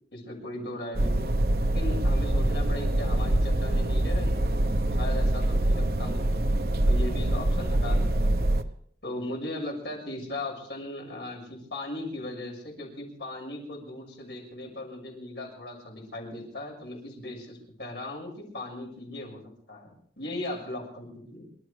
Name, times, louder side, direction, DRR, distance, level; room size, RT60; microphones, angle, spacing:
voice 1, 0.1-1.3 1.7-6.4 6.8-8.5 9.0-21.4, left 1 dB, 80° left, 0 dB, 6.3 m, -38 dB
sound 1, 0.9-8.6, right 1 dB, 55° right, 0.9 m, -25 dB
27.5 x 13.0 x 3.4 m, 0.63 s
head